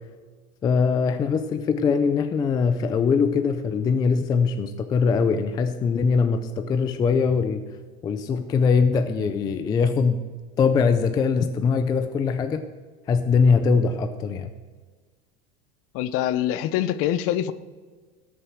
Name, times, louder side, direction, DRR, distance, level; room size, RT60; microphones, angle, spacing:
voice 1, 0.6-7.6 8.0-10.2 10.6-12.6 13.1-14.5, left 5 dB, 15° left, 9 dB, 0.3 m, -22 dB
voice 2, 15.9-17.5, left 12 dB, 45° left, 15 dB, 0.7 m, -24 dB
18.0 x 6.7 x 6.4 m, 1.4 s
supercardioid pair, 160°, 32 cm